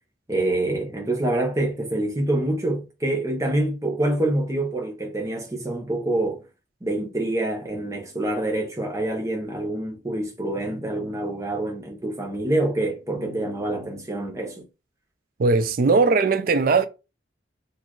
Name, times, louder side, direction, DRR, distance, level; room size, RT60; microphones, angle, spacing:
voice 1, 0.3-6.4 6.8-14.6, right 1 dB, 15° right, 0.8 m, -26 dB
voice 2, 15.4-16.9, right 4 dB, 50° right, 0.4 m, -19 dB
4.2 x 2.5 x 3.0 m
head